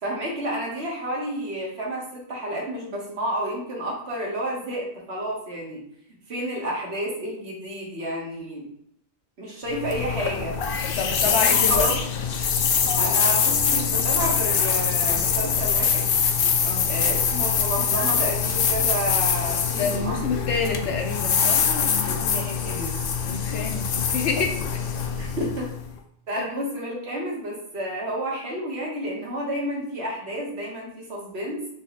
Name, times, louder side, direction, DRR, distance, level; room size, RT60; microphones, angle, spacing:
voice 1, 0.0-5.8 6.3-8.7 9.4-10.6 11.2-11.9 13.0-16.1 16.9-20.4 22.0-22.9 25.2-25.7 26.3-31.7, right 1 dB, 65° right, -3 dB, 1.6 m, -30 dB
sound 1, 9.7-25.9, left 6 dB, 60° left, 0.7 m, -24 dB
voice 2, 10.9-11.9 16.6-16.9 19.8-21.7 23.2-24.8 26.4-26.5, left 5 dB, 80° left, 3 dB, 1.1 m, -28 dB
4.3 x 3.0 x 4.0 m, 0.72 s
omnidirectional pair, 1.2 m